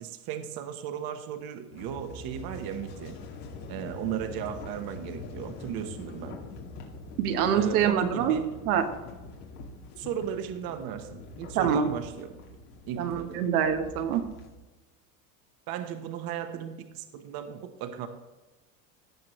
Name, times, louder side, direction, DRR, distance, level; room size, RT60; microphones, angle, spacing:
voice 1, 0.0-3.2 3.7-6.4 7.5-8.5 10.0-12.3 12.9-13.5 15.7-18.1, right 9 dB, 55° right, 8 dB, 1.1 m, -35 dB
sound 1, 1.7-14.6, left 3 dB, 85° left, 2.3 m, -44 dB
voice 2, 7.2-8.4 8.6-8.9 11.5-11.9 13.0-14.2, right 8 dB, 85° right, 6 dB, 1.2 m, -25 dB
16.0 x 6.1 x 3.1 m, 1.2 s
supercardioid pair, 120°, 44 cm